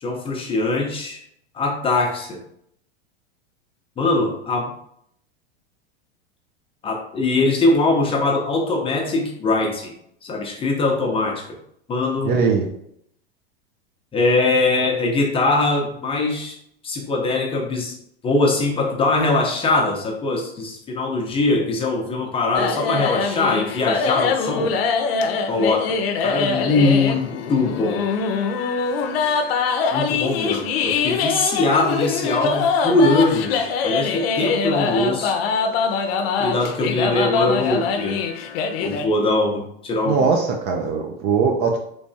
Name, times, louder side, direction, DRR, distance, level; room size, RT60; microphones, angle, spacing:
voice 1, 0.0-1.2 1.5-2.4 4.0-4.7 6.8-9.9 10.2-11.4 11.9-12.3 14.1-16.5 16.8-18.0 18.2-24.7 25.5-28.1 29.9-35.3 36.4-38.2 38.8-40.3, left 2 dB, 20° left, 0 dB, 0.7 m, -21 dB
voice 2, 12.2-12.7 40.0-41.8, right 5 dB, 35° right, 2 dB, 0.4 m, -20 dB
sound 1, 22.5-39.0, left 5 dB, 70° left, 0.6 m, -23 dB
3.3 x 3.2 x 2.7 m, 0.71 s
supercardioid pair, 130°, 31 cm